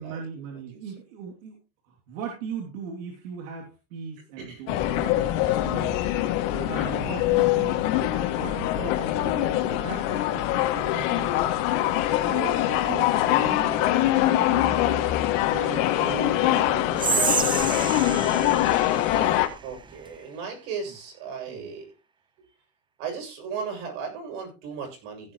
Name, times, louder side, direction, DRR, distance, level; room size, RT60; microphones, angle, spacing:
voice 1, 0.0-1.6 1.8-5.2 5.6-11.4 12.2-15.2 15.5-17.8 21.5-21.7, right 6 dB, 90° right, 0 dB, 3.0 m, -39 dB
sound 1, 4.7-19.5, left 13 dB, 70° left, 2.4 m, -23 dB
Whispering, 16.9-20.2, right 5 dB, 10° right, 0.6 m, -29 dB
voice 2, 19.6-21.9 22.4-22.5 23.0-25.3, right 6 dB, 70° right, 3 dB, 7.5 m, -36 dB
16.0 x 10.0 x 3.1 m, 0.29 s
supercardioid pair, 140°, 38 cm